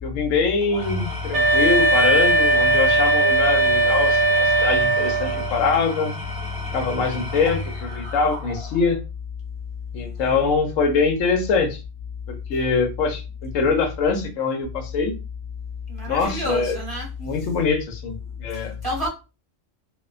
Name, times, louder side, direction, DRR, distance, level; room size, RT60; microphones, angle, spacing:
voice 1, 0.0-6.1 6.7-9.0 9.9-11.8 12.3-15.1 16.1-16.8 17.2-18.7, left 4 dB, 85° left, 1.0 m, -23 dB
Engine / Tools, 0.6-8.9, left 1 dB, 5° left, 0.6 m, -33 dB
Wind instrument woodwind instrument, 1.3-5.5, right 2 dB, 55° right, 0.7 m, -18 dB
voice 2, 10.1-10.4 15.9-17.1 18.5-19.1, left 1 dB, 20° right, 1.0 m, -29 dB
2.4 x 2.1 x 2.3 m
omnidirectional pair, 1.3 m